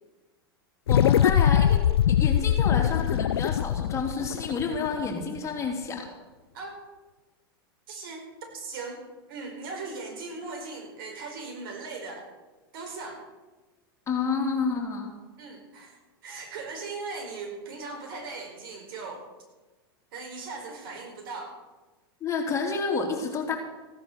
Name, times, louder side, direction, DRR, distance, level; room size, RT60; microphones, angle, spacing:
sound 1, 0.9-5.5, left 10 dB, 85° left, 0.4 m, -23 dB
voice 1, 0.9-1.8 2.1-6.1 14.1-15.1 22.2-23.6, left 4 dB, 25° left, 1 dB, 3.4 m, -29 dB
voice 2, 7.9-8.3 8.5-9.0 9.3-12.3 12.7-13.2 15.4-19.3 20.1-21.6, right 3 dB, 65° right, 3 dB, 4.6 m, -38 dB
16.0 x 9.9 x 6.7 m, 1.2 s
hypercardioid pair, 105°, 13 cm